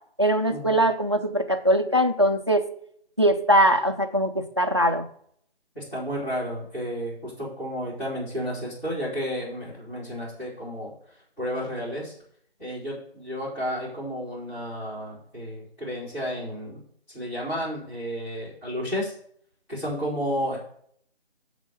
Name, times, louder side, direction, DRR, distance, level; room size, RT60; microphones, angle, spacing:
voice 1, 0.2-2.6 3.2-5.1, right 1 dB, 25° right, 5 dB, 0.5 m, -21 dB
voice 2, 5.7-10.9 11.4-12.1 12.6-16.7 17.1-19.1 19.7-20.6, equal, 10° left, -13 dB, 3.3 m, -32 dB
7.4 x 5.0 x 6.5 m, 0.65 s
figure-of-eight pair, 160°, 32 cm